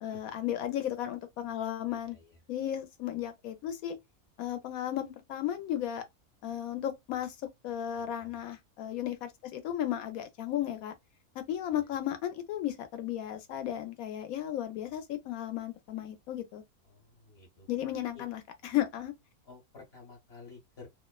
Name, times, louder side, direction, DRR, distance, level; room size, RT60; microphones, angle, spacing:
voice 1, 0.0-2.2 2.5-4.0 4.4-6.0 6.4-7.3 7.6-10.9 11.4-16.6 17.7-19.1, left 11 dB, 75° left, 1.0 m, -34 dB
voice 2, 2.1-2.4 8.0-8.4 16.8-17.7 18.1-18.3 19.4-20.9, left 4 dB, 50° left, 1.1 m, -52 dB
2.7 x 2.1 x 2.2 m
omnidirectional pair, 1.6 m